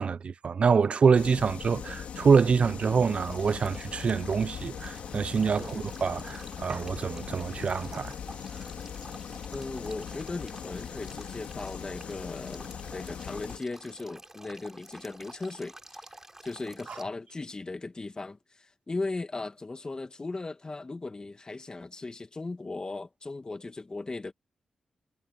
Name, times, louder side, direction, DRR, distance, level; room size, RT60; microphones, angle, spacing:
voice 1, 0.0-8.1, right 5 dB, 60° right, 0.7 m, -25 dB
sound 1, 1.1-13.6, left 8 dB, 85° left, 3.3 m, -40 dB
Male speech man speaking / Stream / Trickle dribble, 3.1-17.0, right 1 dB, 20° right, 5.9 m, -50 dB
voice 2, 9.5-16.1 16.4-24.3, left 3 dB, 35° left, 2.3 m, -37 dB
supercardioid pair, 45°, 2 cm